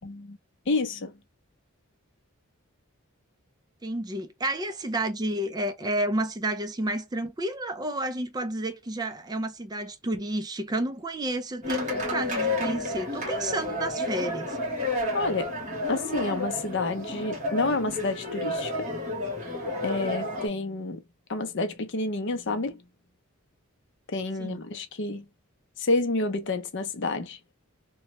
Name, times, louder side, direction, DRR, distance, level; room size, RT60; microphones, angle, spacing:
voice 1, 0.0-0.4 0.7-1.1 15.1-15.6 15.9-18.9 19.8-21.0 21.3-22.8 24.1-25.3 25.8-27.4, left 3 dB, 55° left, 0.6 m, -29 dB
voice 2, 3.8-14.6 24.4-24.6, right 1 dB, 20° right, 0.4 m, -31 dB
sound 1, 11.6-20.5, left 2 dB, 35° right, 1.2 m, -31 dB
3.0 x 2.2 x 2.9 m
head